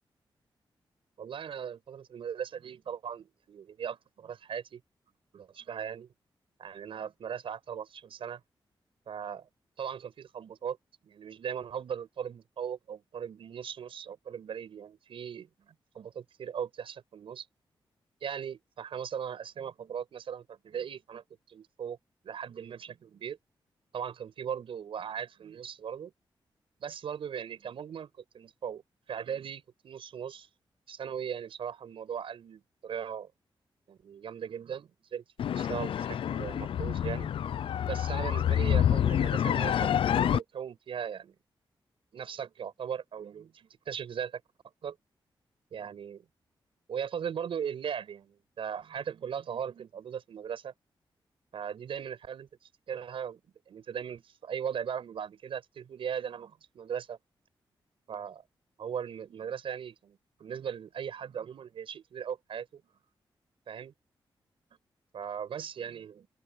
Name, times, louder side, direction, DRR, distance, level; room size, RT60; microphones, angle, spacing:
voice 1, 1.2-4.8 5.3-6.1 6.6-8.4 9.1-9.5 9.8-10.8 11.0-17.5 18.2-22.0 22.2-23.4 23.9-26.1 26.8-28.8 29.1-30.5 30.9-33.3 33.9-37.3 37.9-41.3 42.1-44.4 44.8-45.0 45.7-46.2 46.9-50.7 51.5-52.5 52.9-57.2 58.1-58.4 58.8-62.8 63.7-63.9 65.1-66.3, right 8 dB, 85° right, 6.4 m, -38 dB
sound 1, 35.4-40.4, left 9 dB, 80° left, 0.5 m, -27 dB
open air
wide cardioid pair, 105°, 9 cm